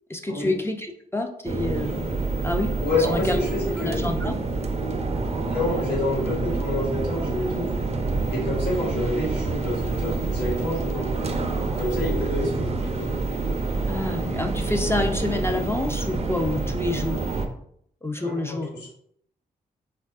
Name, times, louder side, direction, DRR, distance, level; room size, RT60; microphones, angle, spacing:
voice 1, 0.1-2.1 2.4-2.7 3.1-3.4 3.8-4.3 13.9-17.2 18.0-18.7, left 2 dB, 15° left, 4 dB, 0.4 m, -28 dB
sound 1, 1.4-17.5, right 3 dB, 40° right, 0.5 m, -27 dB
voice 2, 2.8-4.0 5.4-7.7 8.3-11.1 11.8-13.1 18.2-18.9, left 2 dB, 80° left, -4 dB, 1.3 m, -28 dB
3.2 x 2.2 x 2.4 m, 0.69 s
supercardioid pair, 45°, 17 cm